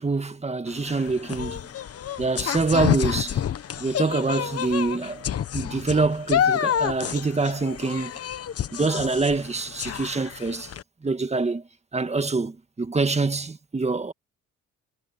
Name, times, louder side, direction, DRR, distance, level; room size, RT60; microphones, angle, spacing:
voice 1, 0.0-1.7 2.2-3.4 3.8-5.3 5.5-8.1 8.7-10.7 11.0-11.6 11.9-14.1, right 3 dB, 20° right, 1.7 m, -25 dB
sound 1, 0.7-10.8, left 9 dB, 50° left, 1.2 m, -28 dB
cardioid pair, 90°, 30 cm